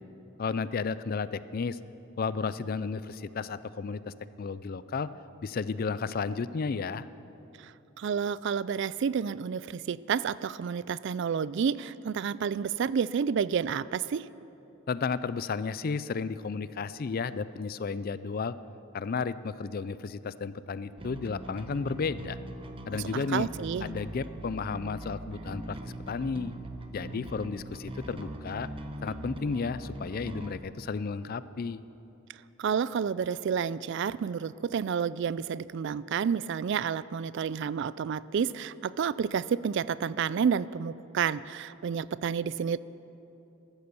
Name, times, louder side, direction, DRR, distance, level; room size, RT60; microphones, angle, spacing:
voice 1, 0.4-1.8 2.2-5.1 5.4-7.1 14.9-18.5 18.9-22.4 22.9-23.5 23.8-25.8 26.1-26.5 26.9-28.7 29.0-31.8, left 5 dB, 45° left, 16 dB, 0.4 m, -33 dB
voice 2, 8.0-14.3 22.9-23.9 32.6-42.8, right 7 dB, 60° right, 18 dB, 0.3 m, -30 dB
Bass guitar, 21.0-30.6, right 1 dB, 25° right, 1.0 m, -41 dB
15.0 x 13.0 x 6.9 m, 3.0 s
head